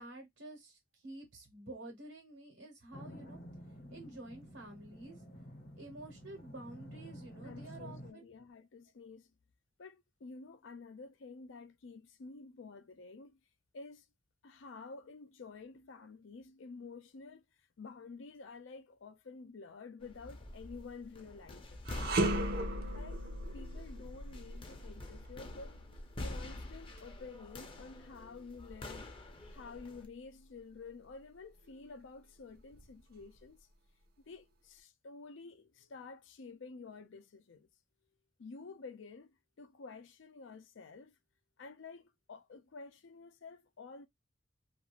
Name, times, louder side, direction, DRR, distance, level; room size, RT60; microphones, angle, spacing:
voice 1, 0.0-3.4 3.9-5.2 5.8-8.3, right 2 dB, 85° right, 1.1 m, -50 dB
sound 1, 2.9-8.1, equal, 55° left, 0.8 m, -50 dB
voice 2, 7.4-9.3 9.8-13.4 13.7-14.1 14.4-22.0 22.9-23.2 23.5-25.8 26.2-29.1 29.5-33.7 34.2-37.7 38.4-41.2 41.6-44.1, left 4 dB, 80° left, 0.5 m, -50 dB
sound 2, 20.0-30.1, left 1 dB, 30° left, 0.6 m, -47 dB
sound 3, 21.8-31.1 31.5-31.7 32.6-33.4, right 1 dB, 55° right, 0.6 m, -39 dB
2.5 x 2.4 x 3.0 m
head